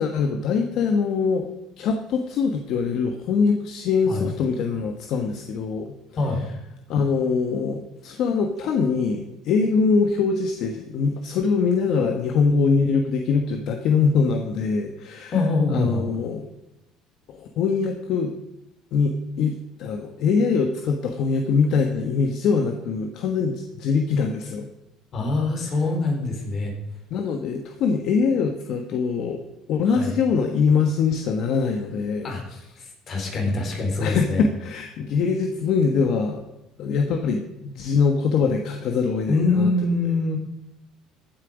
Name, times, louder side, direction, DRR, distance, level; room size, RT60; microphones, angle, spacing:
voice 1, 0.0-1.5 1.8-5.9 6.9-15.3 15.7-16.5 17.3-18.3 18.9-24.7 27.1-29.4 29.7-32.3 34.0-36.4 36.8-39.7, left 5 dB, 60° left, 5 dB, 1.3 m, -23 dB
voice 2, 6.2-6.5 15.3-16.0 25.1-26.8 29.9-30.1 32.2-32.4 32.8-34.4 39.3-40.4, left 3 dB, 40° left, 2 dB, 4.0 m, -24 dB
15.0 x 9.0 x 5.1 m, 0.92 s
cardioid pair, 125°, 0 cm